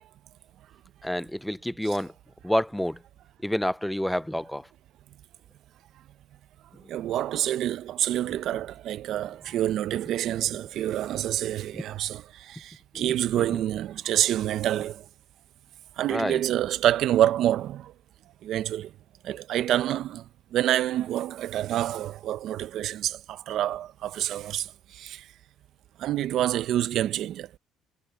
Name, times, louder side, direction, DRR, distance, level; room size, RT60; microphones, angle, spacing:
voice 1, 1.0-2.1 2.4-3.0 3.4-4.7 11.7-11.8 12.9-13.6 16.1-16.4, equal, 5° left, 0.5 m, -29 dB
voice 2, 6.9-15.0 16.0-17.9 18.4-18.9 19.2-20.2 20.5-24.7 24.9-25.2 26.0-27.5, right 12 dB, 65° right, 0.8 m, -27 dB
supercardioid pair, 85°, 0 cm